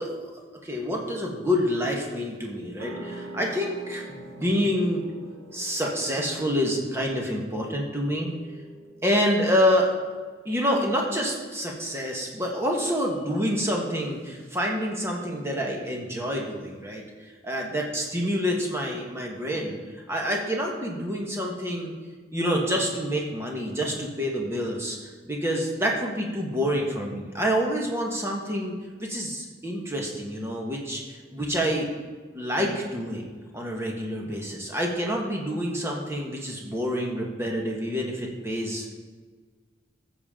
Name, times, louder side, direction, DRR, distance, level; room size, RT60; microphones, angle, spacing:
voice 1, 0.0-5.2 5.5-8.3 9.0-9.9 10.4-21.9 22.3-31.9 32.3-33.2 33.5-38.9, equal, 15° right, -1 dB, 1.4 m, -27 dB
sound 1, 2.8-10.0, right 1 dB, 80° right, 1.8 m, -44 dB
14.0 x 7.2 x 3.7 m, 1.5 s
head